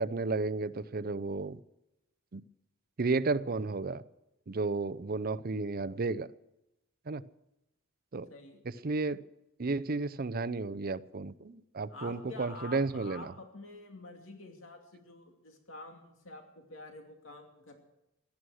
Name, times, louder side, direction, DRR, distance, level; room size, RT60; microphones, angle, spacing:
voice 1, 0.0-1.6 2.3-2.4 3.0-4.0 4.5-6.3 7.1-7.2 8.1-8.3 8.8-9.2 9.6-13.3, right 3 dB, 45° right, 16 dB, 0.6 m, -32 dB
voice 2, 8.3-8.6 11.9-17.8, left 2 dB, 70° left, 3 dB, 2.6 m, -48 dB
17.5 x 12.5 x 6.3 m, 0.91 s
head